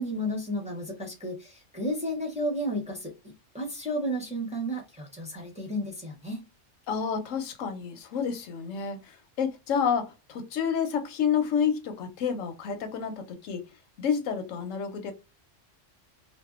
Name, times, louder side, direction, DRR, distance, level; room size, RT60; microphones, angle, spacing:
voice 1, 0.0-6.4, equal, 5° right, 0.7 m, -32 dB
voice 2, 6.9-13.7 14.0-15.1, left 7 dB, 90° left, 1.0 m, -29 dB
2.6 x 2.2 x 2.3 m
omnidirectional pair, 1.3 m